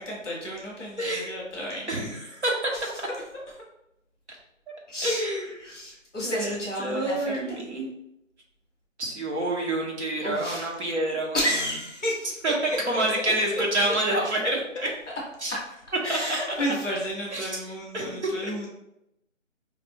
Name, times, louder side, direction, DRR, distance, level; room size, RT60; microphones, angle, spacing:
voice 1, 0.0-2.0 2.7-3.2 4.9-5.2 5.6-7.6 10.2-10.7 11.3-14.2 14.7-14.8 16.0-18.7, equal, 5° left, -5 dB, 0.9 m, -32 dB
voice 2, 1.0-1.4 1.9-2.5 5.0-5.5 6.2-7.9 9.0-11.4 12.4-12.5 12.9-14.6 15.4-15.6 16.1-16.2 17.3-17.5 17.9-18.5, right 1 dB, 60° right, -2 dB, 1.1 m, -28 dB
4.4 x 2.5 x 3.1 m, 0.84 s
figure-of-eight pair, 160°, 39 cm